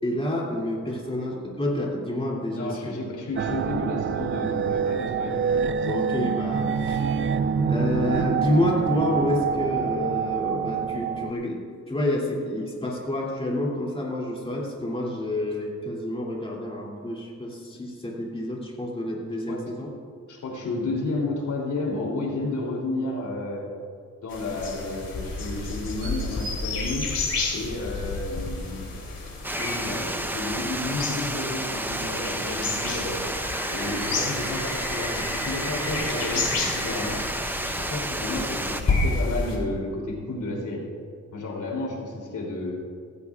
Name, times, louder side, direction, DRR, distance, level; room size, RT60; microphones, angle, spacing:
voice 1, 0.0-3.1 5.8-7.1 7.7-11.6 11.9-19.9, left 1 dB, 20° left, -3 dB, 2.8 m, -28 dB
voice 2, 2.5-5.3 19.5-19.6 20.3-23.6 24.2-27.0 27.5-28.9 29.6-33.2 33.7-37.2 37.8-40.8 41.3-42.8, left 2 dB, 80° left, -2 dB, 3.1 m, -31 dB
sound 1, 3.4-11.3, right 6 dB, 45° right, 0.4 m, -26 dB
sound 2, 24.3-39.6, left 3 dB, 55° left, 3.2 m, -31 dB
Water, 29.4-38.8, right 1 dB, 5° right, 0.7 m, -31 dB
17.0 x 16.0 x 2.4 m, 2.1 s
wide cardioid pair, 105°, 30 cm